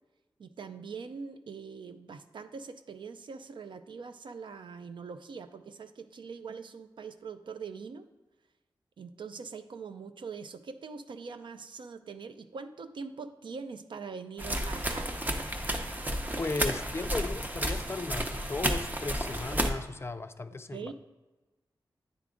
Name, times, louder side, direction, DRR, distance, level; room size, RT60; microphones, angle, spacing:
voice 1, 0.4-8.1 9.0-15.1 20.7-20.9, right 5 dB, 80° right, 9 dB, 0.4 m, -43 dB
sound 1, 14.4-19.7, right 1 dB, 20° right, 0.7 m, -32 dB
voice 2, 16.4-20.9, left 3 dB, 30° left, 11 dB, 0.3 m, -36 dB
9.5 x 3.5 x 3.7 m, 1.1 s
wide cardioid pair, 80°, 8 cm